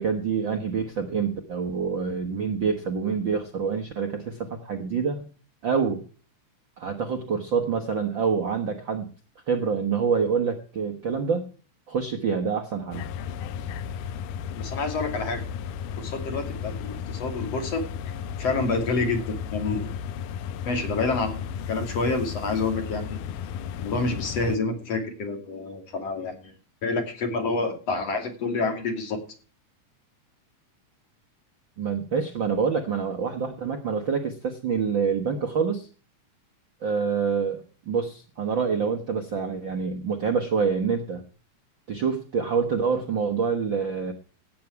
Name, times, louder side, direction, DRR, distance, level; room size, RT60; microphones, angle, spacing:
voice 1, 0.0-5.2 5.6-6.0 6.8-9.1 9.5-11.5 11.9-13.0 31.8-35.9 36.8-41.2 41.9-44.1, right 6 dB, 50° right, 4 dB, 1.5 m, -26 dB
sound 1, 12.9-24.6, left 7 dB, 85° left, 2.3 m, -34 dB
voice 2, 14.6-15.4 16.0-17.9 18.4-19.9 20.7-23.2 23.8-26.5 26.8-29.2, left 3 dB, 50° left, 5 dB, 3.6 m, -28 dB
16.5 x 8.6 x 4.6 m, 0.39 s
omnidirectional pair, 3.7 m